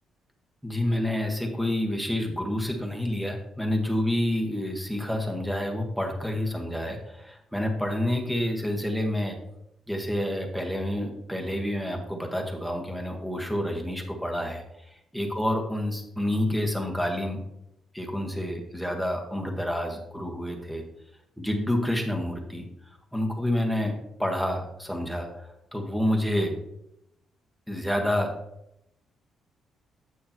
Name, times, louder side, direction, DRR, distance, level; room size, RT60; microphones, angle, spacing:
voice 1, 0.6-9.4 9.9-17.4 17.9-20.8 21.4-22.6 23.1-23.9 24.2-26.5 27.7-28.3, left 1 dB, ahead, 2 dB, 1.5 m, -28 dB
8.5 x 6.5 x 3.0 m, 0.82 s
cardioid pair, 90°, 0 cm